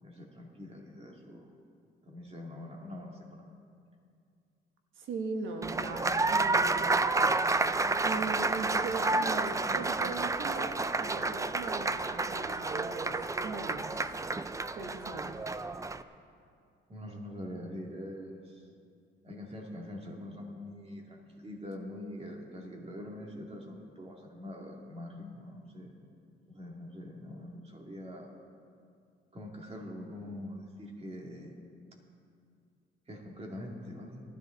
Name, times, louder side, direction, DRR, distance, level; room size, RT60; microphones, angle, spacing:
voice 1, 0.0-1.5 2.1-3.5 16.9-18.6 19.2-25.9 26.5-28.3 29.3-31.5 33.1-34.2, left 1 dB, 30° right, 0 dB, 2.5 m, -44 dB
voice 2, 5.0-7.0 8.0-14.0 14.8-15.5, right 4 dB, 75° right, 4 dB, 1.3 m, -39 dB
Applause, 5.6-16.0, right 3 dB, 15° right, 0.5 m, -30 dB
18.0 x 13.0 x 4.0 m, 2.3 s
cardioid pair, 90°, 20 cm